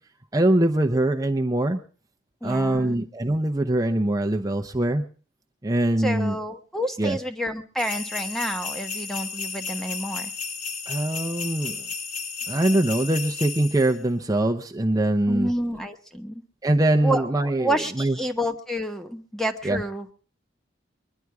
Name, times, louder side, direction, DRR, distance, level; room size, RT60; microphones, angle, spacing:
voice 1, 0.3-1.8 2.4-5.0 5.6-6.4 7.0-7.2 10.9-11.8 12.5-15.5 16.6-18.2 19.6-19.8, right 1 dB, 20° right, 3 dB, 0.7 m, -23 dB
voice 2, 2.4-3.0 6.0-10.3 15.3-16.4 17.0-20.1, equal, ahead, 7 dB, 1.0 m, -29 dB
sound 1, 7.8-14.0, left 5 dB, 40° left, 1.0 m, -33 dB
22.5 x 11.0 x 4.8 m, 0.40 s
head